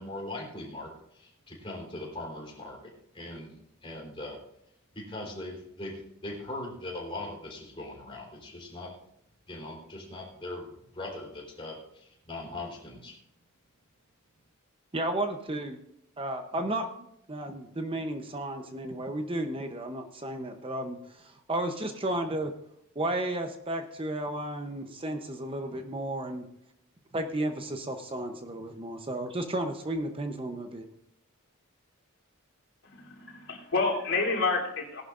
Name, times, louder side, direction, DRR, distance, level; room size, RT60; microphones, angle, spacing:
voice 1, 0.0-3.5 3.8-4.4 4.9-8.9 9.5-13.2, left 2 dB, 25° left, -2 dB, 3.8 m, -40 dB
voice 2, 14.9-15.8 16.2-22.5 23.0-26.5 27.1-30.9, right 1 dB, 25° right, 5 dB, 0.8 m, -33 dB
voice 3, 32.8-35.0, left 3 dB, 65° left, -3 dB, 3.3 m, -29 dB
18.5 x 11.5 x 2.5 m, 0.77 s
head